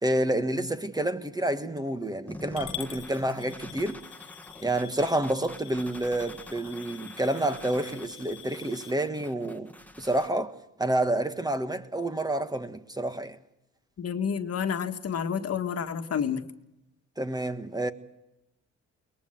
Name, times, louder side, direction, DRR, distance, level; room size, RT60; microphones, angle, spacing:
voice 1, 0.0-4.0 4.6-9.7 10.0-13.4 17.2-17.9, right 1 dB, 15° right, 1.7 m, -29 dB
sound 1, 2.3-10.3, left 1 dB, 5° left, 1.9 m, -46 dB
Coin (dropping) / Glass, 2.6-8.9, left 11 dB, 90° left, 1.9 m, -45 dB
voice 2, 14.0-16.4, left 7 dB, 55° left, 1.7 m, -29 dB
22.5 x 20.5 x 7.8 m
cardioid pair, 90°, 30 cm